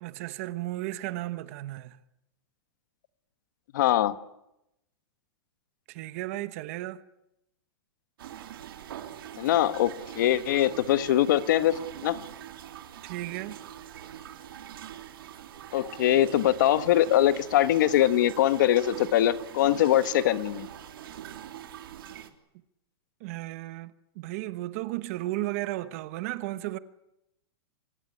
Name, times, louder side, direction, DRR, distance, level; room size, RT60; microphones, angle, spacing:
voice 1, 0.0-2.0 5.9-7.0 13.0-13.6 23.2-26.8, right 17 dB, 35° right, 1.1 m, -34 dB
voice 2, 3.7-4.1 9.4-12.2 15.7-20.7, left 12 dB, 50° left, 1.3 m, -23 dB
sound 1, 8.2-22.3, right 11 dB, 60° right, 3.2 m, -43 dB
24.5 x 21.5 x 9.9 m
supercardioid pair, 175°, 13 cm